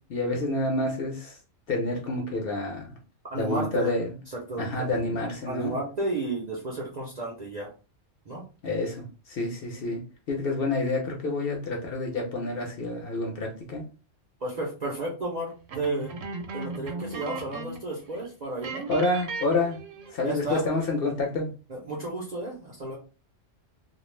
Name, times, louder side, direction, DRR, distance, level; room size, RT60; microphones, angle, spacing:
voice 1, 0.1-1.3 1.7-2.9 3.4-4.1 4.6-5.7 8.6-10.0 10.3-13.8 18.9-19.8 20.1-21.5, left 2 dB, 55° left, 0.7 m, -28 dB
voice 2, 3.3-3.9 4.3-4.9 5.5-7.7 8.3-8.4 14.4-16.1 16.5-18.9 20.2-20.6 21.7-23.0, right 2 dB, 50° right, 0.5 m, -32 dB
sound 1, 15.7-17.9 18.1-18.3 18.6-20.3, right 3 dB, 85° right, 1.0 m, -37 dB
2.4 x 2.0 x 3.1 m
omnidirectional pair, 1.3 m